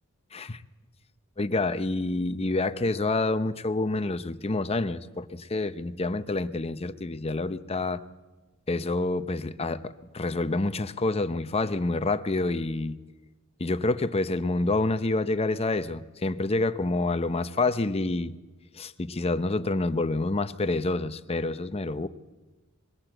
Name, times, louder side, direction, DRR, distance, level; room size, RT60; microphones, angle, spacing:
voice 1, 0.3-0.6 1.4-8.0 8.7-13.0 13.6-18.3 18.7-22.1, left 2 dB, 30° left, 0.7 m, -28 dB
22.5 x 16.5 x 8.0 m
head